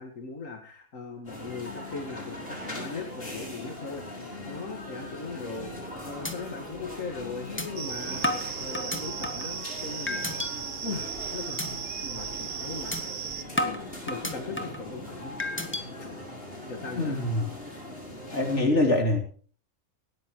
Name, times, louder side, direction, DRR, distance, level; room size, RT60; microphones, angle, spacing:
voice 1, 0.0-11.7 12.0-13.0 13.6-15.3 16.7-17.2, left 4 dB, 90° left, 4 dB, 2.4 m, -39 dB
sound 1, 1.2-18.6, left 1 dB, 45° left, 8.2 m, -40 dB
sound 2, 5.6-5.9 6.2-6.3 6.8-6.9 7.6-7.7 8.2-9.5 10.1-10.5 10.9-11.2 11.6-11.7 12.1-12.3 12.9-13.0 13.6-14.8 15.4-15.8, left 1 dB, 10° left, 1.9 m, -31 dB
sound 3, 7.8-13.4, right 7 dB, 50° right, 1.1 m, -36 dB
voice 2, 17.0-17.5 18.3-19.2, left 2 dB, 65° left, 2 dB, 3.6 m, -24 dB
18.5 x 14.0 x 3.2 m, 0.42 s
omnidirectional pair, 1.3 m